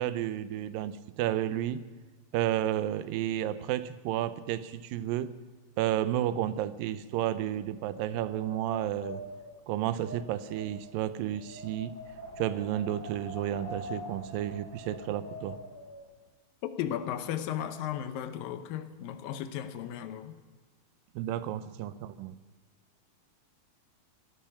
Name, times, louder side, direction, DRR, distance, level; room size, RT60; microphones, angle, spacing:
voice 1, 0.0-1.9 2.3-5.4 5.8-9.2 9.7-12.0 12.4-15.6 21.2-22.4, right 12 dB, 90° right, 2.4 m, -32 dB
Wind, 6.9-16.1, left 1 dB, 25° left, 4.3 m, -45 dB
voice 2, 16.6-20.4, left 10 dB, 85° left, 2.6 m, -35 dB
16.5 x 12.5 x 5.8 m
omnidirectional pair, 4.0 m